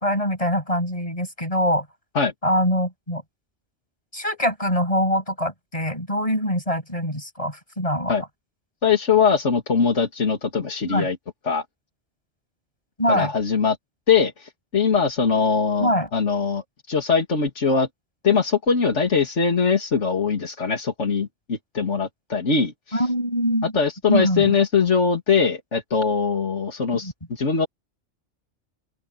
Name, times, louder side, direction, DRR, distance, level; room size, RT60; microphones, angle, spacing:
voice 1, 0.0-1.9 2.4-3.2 4.1-8.1 10.9-11.1 13.0-13.3 15.8-16.1 22.9-23.7 24.1-24.5 26.9-27.1, equal, 30° left, 7.4 m, -23 dB
voice 2, 8.8-11.2 11.5-11.6 13.1-13.8 14.1-17.9 18.2-22.7 23.7-27.7, left 5 dB, 90° left, 2.5 m, -21 dB
open air
omnidirectional pair, 1.2 m